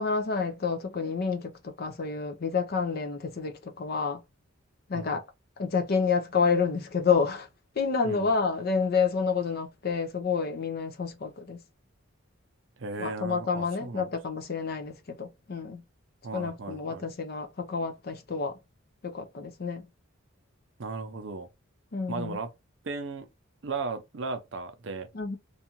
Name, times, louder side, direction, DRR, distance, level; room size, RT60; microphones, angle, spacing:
voice 1, 0.0-1.5 1.8-4.2 4.9-5.2 5.6-7.5 7.8-11.6 13.0-15.8 16.3-18.5 19.0-19.8 21.9-22.4 25.1-25.4, left 5 dB, 45° left, 0.5 m, -29 dB
voice 2, 12.8-14.1 16.2-17.0 20.8-21.5 22.1-22.5 22.8-23.3 23.6-25.1, right 4 dB, 60° right, 0.5 m, -36 dB
2.6 x 2.3 x 2.8 m
head